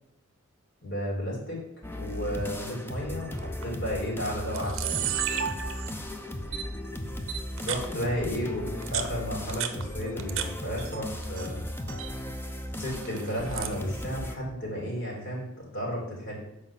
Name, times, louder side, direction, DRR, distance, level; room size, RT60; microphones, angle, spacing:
voice 1, 0.8-1.6 2.0-5.1 7.6-11.6 12.7-16.4, equal, 55° left, -3 dB, 3.1 m, -33 dB
sound 1, 1.8-14.4, left 1 dB, 10° left, 0.5 m, -36 dB
Camera, 3.4-3.6 4.3-4.4 4.5-6.1 6.5-6.6 7.3-7.9 8.7-10.5 10.8-11.5 11.8-12.1 12.9-13.8, right 9 dB, 60° right, 0.6 m, -33 dB
7.3 x 4.9 x 5.7 m, 0.82 s
head